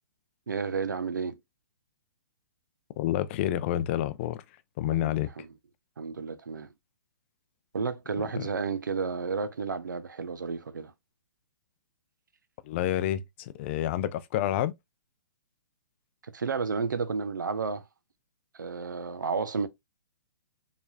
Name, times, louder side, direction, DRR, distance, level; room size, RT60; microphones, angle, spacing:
voice 1, 0.5-1.4 4.9-5.5 6.0-6.7 7.7-10.9 16.2-17.8 18.5-19.7, right 5 dB, 80° right, 0.6 m, -32 dB
voice 2, 3.0-4.4 4.8-5.3 8.4-8.5 12.6-14.7, left 12 dB, 40° left, 0.4 m, -29 dB
4.5 x 3.4 x 2.3 m
hypercardioid pair, 125°, 10 cm